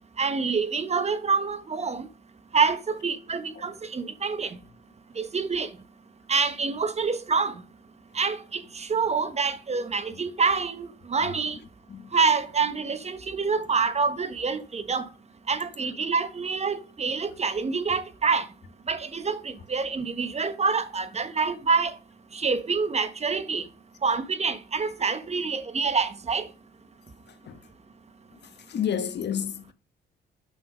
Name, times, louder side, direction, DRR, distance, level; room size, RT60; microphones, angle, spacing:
voice 1, 0.2-2.1 2.5-4.6 5.1-5.8 6.3-7.7 8.1-11.6 12.1-15.1 15.4-18.5 18.8-22.0 22.3-23.7 24.0-26.5, right 5 dB, 35° right, 1.3 m, -27 dB
voice 2, 28.7-29.7, left 8 dB, 60° left, 1.4 m, -29 dB
8.8 x 6.0 x 5.1 m
cardioid pair, 90°, 20 cm